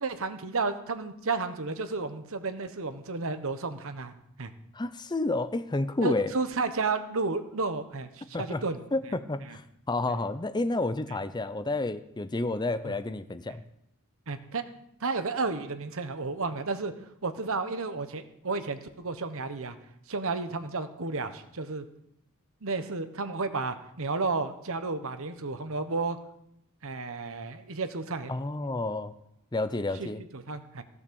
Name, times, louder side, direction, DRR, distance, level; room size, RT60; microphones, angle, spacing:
voice 1, 0.0-4.1 4.4-4.5 6.0-8.8 9.5-9.6 12.8-12.9 14.3-14.6 15.0-16.9 17.2-19.8 20.1-21.8 22.6-26.2 26.8-28.3 30.0-30.1 30.3-30.8, right 3 dB, 65° right, 10 dB, 1.1 m, -32 dB
voice 2, 4.7-6.3 8.3-8.6 8.9-13.6 28.3-29.1 29.5-30.2, left 2 dB, 20° left, 12 dB, 0.6 m, -30 dB
15.5 x 8.5 x 7.0 m, 0.76 s
head